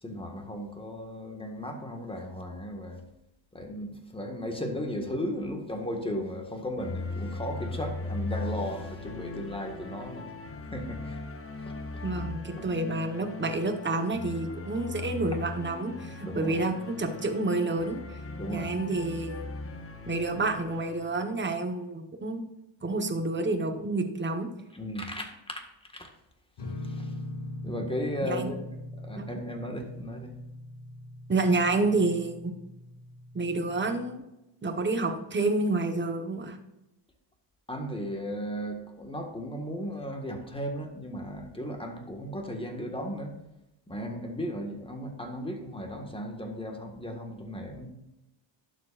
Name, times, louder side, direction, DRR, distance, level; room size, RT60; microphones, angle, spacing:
voice 1, 0.0-3.0 3.5-10.3 10.7-12.0 12.6-12.7 16.2-16.6 18.4-18.8 24.7-25.7 25.9-26.1 26.8-27.1 27.6-28.7 29.0-30.3 37.7-43.4 43.9-47.9, equal, 10° left, 3 dB, 1.7 m, -36 dB
sound 1, 6.8-21.3, left 3 dB, 30° left, 1.0 m, -39 dB
voice 2, 12.0-18.2 18.5-19.4 20.1-22.4 22.8-24.5 28.2-28.5 29.2-29.3 31.3-32.5 33.3-34.2 34.6-36.6, right 2 dB, 25° right, 5 dB, 1.3 m, -29 dB
sound 2, 26.6-34.2, left 1 dB, 60° left, 2.5 m, -41 dB
11.5 x 7.4 x 2.5 m, 0.94 s
cardioid pair, 105°, 46 cm